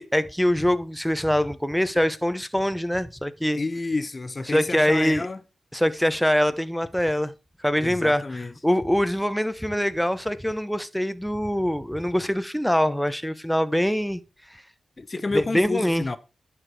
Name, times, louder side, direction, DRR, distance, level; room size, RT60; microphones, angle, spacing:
voice 1, 0.0-3.6 4.5-5.3 5.7-7.3 7.6-14.2 15.3-16.0, equal, 5° left, 0.7 m, -24 dB
voice 2, 3.5-5.4 7.8-8.5 15.0-16.2, left 3 dB, 40° left, 0.8 m, -29 dB
11.0 x 4.6 x 4.8 m
supercardioid pair, 45°, 0 cm